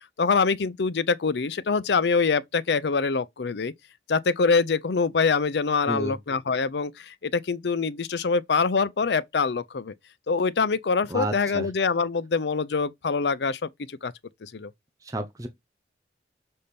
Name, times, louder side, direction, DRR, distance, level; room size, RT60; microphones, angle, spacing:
voice 1, 0.2-3.7 4.1-6.9 7.2-9.9 10.3-13.7 14.0-14.1 14.4-14.7, left 4 dB, 75° left, 0.5 m, -24 dB
voice 2, 5.9-6.2 11.1-11.7 15.1-15.5, right 2 dB, 20° right, 0.7 m, -30 dB
6.5 x 3.5 x 4.2 m
head